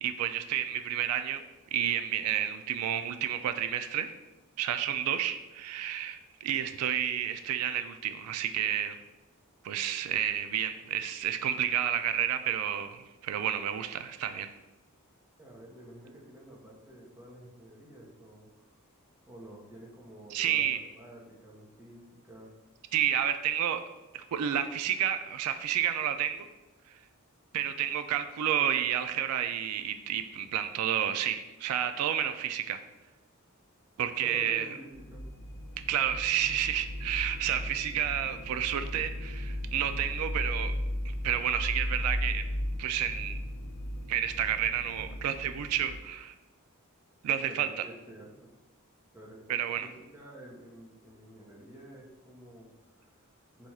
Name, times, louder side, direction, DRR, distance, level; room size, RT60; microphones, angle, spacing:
voice 1, 0.0-1.4 1.7-4.1 4.6-9.0 9.6-14.5 20.3-20.8 22.9-23.8 24.1-26.5 27.5-32.8 34.0-34.7 35.9-40.7 41.2-42.5 42.8-43.4 44.1-46.3 47.2-47.8 49.5-49.9, right 10 dB, 85° right, 12 dB, 0.3 m, -30 dB
voice 2, 15.4-18.7 19.3-22.5 34.2-35.2 47.4-48.5 49.1-53.7, right 1 dB, 10° right, -3 dB, 0.8 m, -50 dB
sound 1, 34.9-46.0, left 1 dB, 50° left, 0.4 m, -36 dB
4.1 x 2.3 x 4.6 m, 1.1 s
head